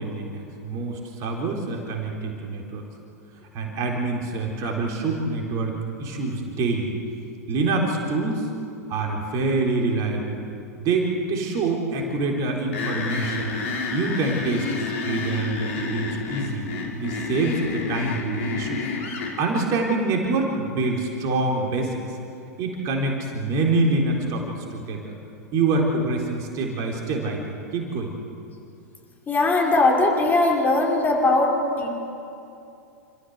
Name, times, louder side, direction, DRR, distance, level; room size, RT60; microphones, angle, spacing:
voice 1, 0.0-2.8 3.5-5.7 6.0-6.9 7.5-8.4 8.9-10.4 10.8-13.6 13.9-18.9 19.4-22.0 22.6-25.1 25.5-27.4 27.7-28.1, right 3 dB, 40° right, 0 dB, 4.1 m, -26 dB
sound 1, 12.7-19.3, left 4 dB, 55° left, 4.9 m, -29 dB
voice 2, 29.3-31.9, left 2 dB, 20° left, 0 dB, 5.1 m, -20 dB
28.5 x 15.0 x 8.2 m, 2.7 s
figure-of-eight pair, 100°, 9 cm